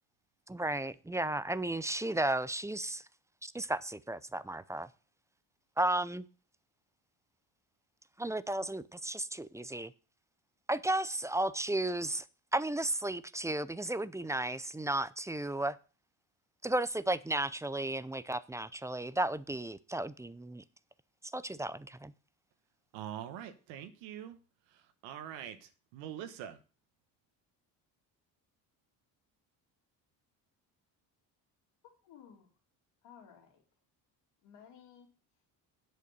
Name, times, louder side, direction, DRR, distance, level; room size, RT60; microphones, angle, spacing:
voice 1, 0.5-3.0 3.4-4.9 5.8-6.2 8.2-9.9 10.7-12.2 12.5-15.8 16.6-20.6 21.3-22.1, right 1 dB, 5° right, 0.5 m, -34 dB
voice 2, 22.9-24.4 25.0-26.6, right 10 dB, 85° right, 1.4 m, -44 dB
voice 3, 32.0-32.5 33.0-33.6 34.4-35.1, left 8 dB, 75° left, 2.9 m, -56 dB
8.3 x 6.6 x 6.8 m
supercardioid pair, 80°, 43 cm